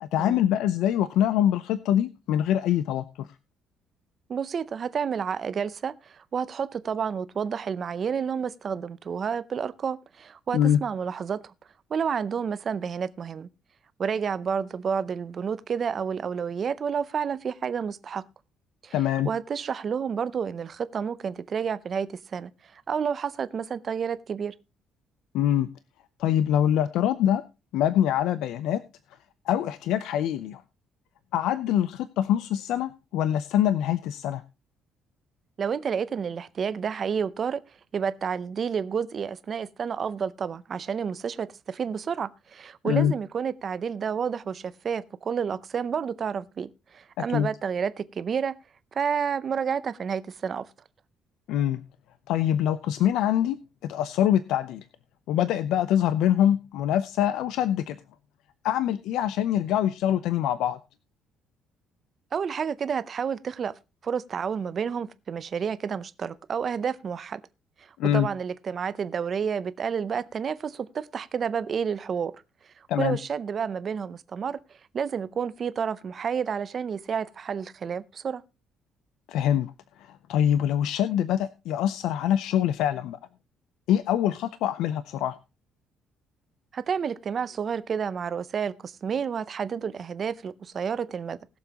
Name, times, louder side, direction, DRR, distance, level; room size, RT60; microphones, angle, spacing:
voice 1, 0.0-3.3 10.5-10.8 18.9-19.3 25.3-25.7 26.2-27.4 27.7-28.8 29.5-30.6 31.3-34.4 42.8-43.1 47.3-47.5 51.5-51.8 52.3-53.6 53.8-54.8 55.3-58.0 58.6-60.8 68.0-68.3 72.9-73.2 79.3-79.7 80.0-83.2 83.9-85.4, left 10 dB, 70° left, 0.5 m, -24 dB
voice 2, 4.3-11.5 11.9-13.5 14.0-18.2 18.8-18.9 19.2-24.5 35.6-37.6 37.9-48.5 48.9-50.6 62.3-63.7 64.0-67.4 67.8-72.3 72.8-74.6 74.9-78.4 86.7-91.4, right 7 dB, 30° right, 0.6 m, -30 dB
20.0 x 7.1 x 2.9 m
cardioid pair, 175°, 0 cm